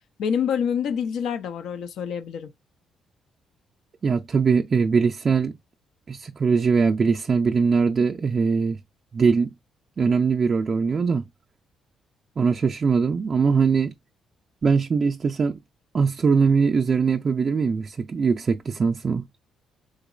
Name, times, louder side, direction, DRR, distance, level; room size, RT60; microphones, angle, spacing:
voice 1, 0.2-2.5, left 7 dB, 75° left, 0.4 m, -26 dB
voice 2, 4.0-5.5 6.1-8.8 9.1-9.5 10.0-11.2 12.4-13.9 14.6-15.6 15.9-19.3, right 5 dB, 40° right, 0.4 m, -21 dB
3.8 x 3.0 x 2.3 m
cardioid pair, 90°, 0 cm